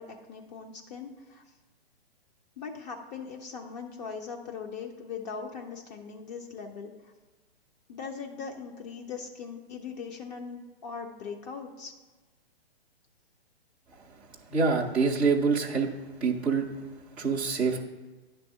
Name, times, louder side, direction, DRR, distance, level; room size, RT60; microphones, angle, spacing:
voice 1, 0.0-1.4 2.6-7.1 7.9-11.9, left 5 dB, 40° left, 2 dB, 0.9 m, -40 dB
voice 2, 14.5-15.9 16.2-16.7 17.1-17.8, right 5 dB, 5° right, -6 dB, 0.4 m, -25 dB
10.0 x 3.4 x 6.2 m, 1.2 s
hypercardioid pair, 135°, 32 cm